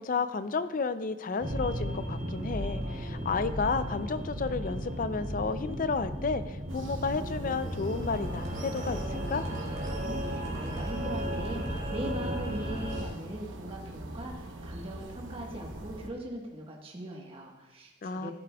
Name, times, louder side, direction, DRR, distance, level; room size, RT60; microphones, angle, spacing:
voice 1, 0.0-9.4 18.0-18.3, left 4 dB, 40° left, 12 dB, 0.4 m, -32 dB
sound 1, 1.4-13.0, equal, 55° right, 2.5 m, -35 dB
sound 2, 6.7-16.1, right 1 dB, 75° right, 0.9 m, -44 dB
voice 2, 9.8-18.3, right 1 dB, 30° right, -1 dB, 1.3 m, -40 dB
16.0 x 8.4 x 2.3 m, 1.1 s
head